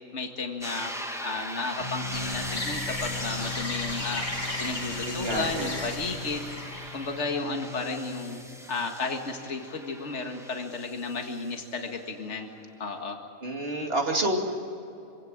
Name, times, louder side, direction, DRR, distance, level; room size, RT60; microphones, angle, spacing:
voice 1, 0.1-0.9 1.2-4.2 4.6-6.5 6.9-12.5 12.8-13.2, left 3 dB, 60° left, 4 dB, 2.2 m, -33 dB
sound 1, 0.6-12.3, equal, ahead, 1.7 m, -41 dB
sound 2, 1.8-8.6, left 5 dB, 80° right, 3.8 m, -41 dB
sound 3, 2.1-7.4, left 1 dB, 35° left, 2.9 m, -35 dB
voice 2, 5.0-5.7 13.4-14.6, right 1 dB, 45° right, 2 dB, 2.7 m, -28 dB
26.0 x 17.5 x 9.0 m, 2.9 s
omnidirectional pair, 1.4 m